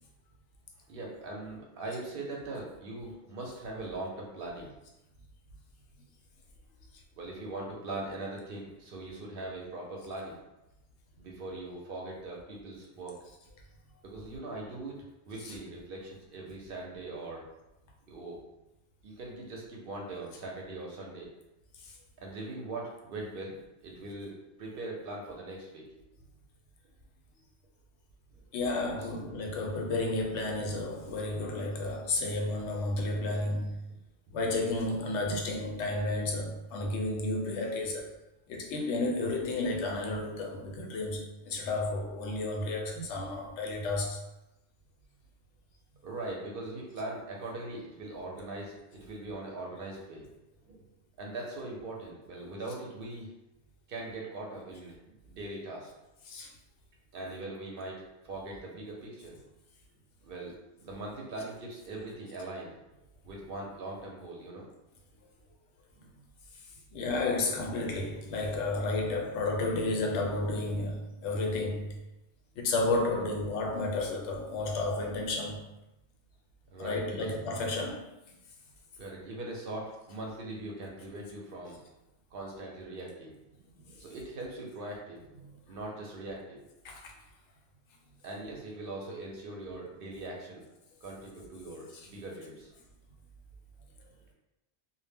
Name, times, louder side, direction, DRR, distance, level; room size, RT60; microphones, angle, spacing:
voice 1, 0.9-4.7 7.1-10.4 11.2-13.2 14.0-15.0 15.3-17.5 18.1-18.4 19.0-21.3 22.2-24.3 24.6-25.8 36.7-37.0 46.0-50.3 50.6-50.8 51.2-53.3 53.9-55.0 55.3-55.9 57.1-59.4 60.2-60.6 60.8-62.8 63.2-64.7 66.0-66.1 73.2-73.3 76.7-77.3 79.0-81.8 82.3-83.3 83.9-85.2 85.7-86.6 88.2-90.6 91.0-92.7, right 2 dB, 60° right, -2 dB, 0.7 m, -41 dB
voice 2, 28.5-33.8 34.3-38.1 38.5-44.2 56.3-56.5 66.9-72.0 72.5-75.6 76.8-78.4 83.8-83.9 85.4-85.5 86.8-87.1, left 2 dB, 90° left, 1 dB, 0.9 m, -32 dB
2.1 x 2.0 x 3.3 m, 0.94 s
omnidirectional pair, 1.1 m